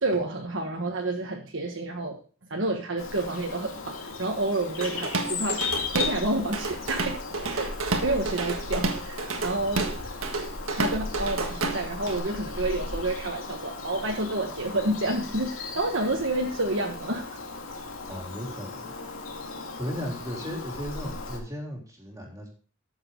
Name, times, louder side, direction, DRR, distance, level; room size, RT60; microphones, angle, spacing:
voice 1, 0.0-2.2 2.5-5.6 5.9-7.7 8.0-10.2 10.8-17.2, right 2 dB, 65° right, 0 dB, 1.5 m, -29 dB
Bird vocalization bird call bird song, 3.0-21.4, left 3 dB, 80° left, 2.4 m, -36 dB
Drum kit / Drum, 4.8-6.2 6.5-12.2, right 3 dB, 90° right, 1.6 m, -30 dB
voice 2, 18.1-18.9 19.8-22.5, equal, 15° right, -1 dB, 3.5 m, -35 dB
13.5 x 7.2 x 3.9 m, 0.40 s
head